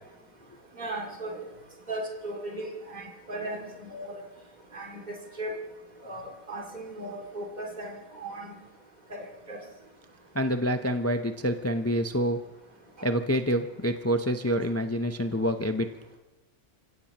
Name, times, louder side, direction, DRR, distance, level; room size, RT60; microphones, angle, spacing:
voice 1, 0.7-1.5 1.9-4.2 4.7-5.5 6.0-8.6 9.1-9.6 13.0-13.1, right 1 dB, 35° right, 0 dB, 2.6 m, -37 dB
voice 2, 10.3-12.4 13.0-16.2, equal, 20° left, 7 dB, 0.4 m, -27 dB
28.5 x 16.5 x 2.9 m, 1.1 s
omnidirectional pair, 1.3 m